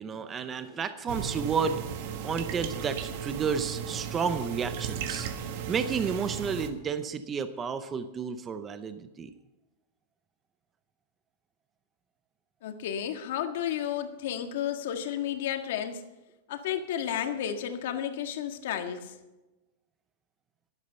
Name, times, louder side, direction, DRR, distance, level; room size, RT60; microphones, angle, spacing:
voice 1, 0.0-1.8 2.2-5.3 5.7-9.3, right 6 dB, 15° right, 10 dB, 0.6 m, -31 dB
sound 1, 1.1-6.7, right 8 dB, 50° right, 1.4 m, -35 dB
voice 2, 12.6-16.0 16.5-19.1, left 9 dB, 65° left, 6 dB, 1.7 m, -32 dB
12.0 x 11.5 x 5.5 m, 1.0 s
supercardioid pair, 165°, 0 cm